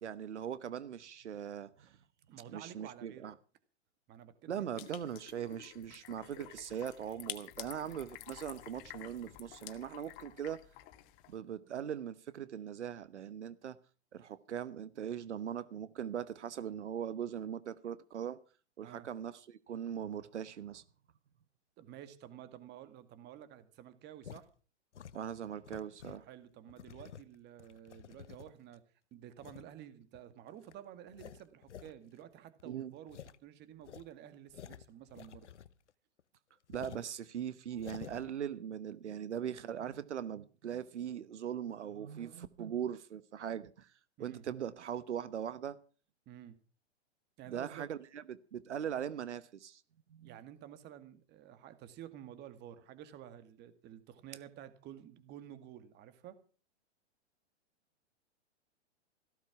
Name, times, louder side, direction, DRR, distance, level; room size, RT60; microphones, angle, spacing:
voice 1, 0.0-2.0 2.5-3.3 4.5-10.6 11.3-13.8 14.1-18.4 18.8-20.8 25.1-26.2 32.6-32.9 36.7-43.9 44.2-45.8 47.5-49.8 50.1-50.4, right 9 dB, 85° right, 1.1 m, -40 dB
voice 2, 2.3-3.3 4.1-4.7 18.8-19.1 21.8-24.5 26.1-28.8 29.1-35.5 44.2-44.4 46.3-46.6 47.4-47.9 50.2-56.4, right 11 dB, 30° right, 2.1 m, -51 dB
sound 1, 4.8-11.4, left 14 dB, 40° left, 2.0 m, -50 dB
sound 2, 24.2-24.4 24.9-26.3 26.7-28.7 29.4-29.7 30.1-30.2 30.6-30.7 31.1-31.9 32.2-32.3 32.6-32.7 33.1-33.4 33.8-35.9 36.2-36.3 36.7-37.1 37.7-38.3, left 9 dB, 85° left, 1.0 m, -51 dB
15.5 x 13.0 x 5.9 m
hypercardioid pair, 125°, 34 cm